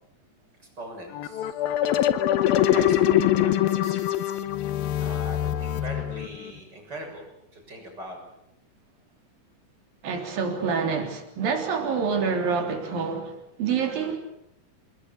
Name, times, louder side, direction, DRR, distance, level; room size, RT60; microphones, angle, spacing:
voice 1, 0.6-2.1 2.6-4.1 5.0-7.3 7.5-8.2, right 1 dB, 30° right, 7.5 m, -41 dB
sound 1, 1.1-6.5, left 11 dB, 90° left, 2.9 m, -23 dB
voice 2, 10.0-13.3 13.6-14.2, right 5 dB, 80° right, 5.2 m, -27 dB
28.0 x 20.0 x 8.4 m
omnidirectional pair, 4.0 m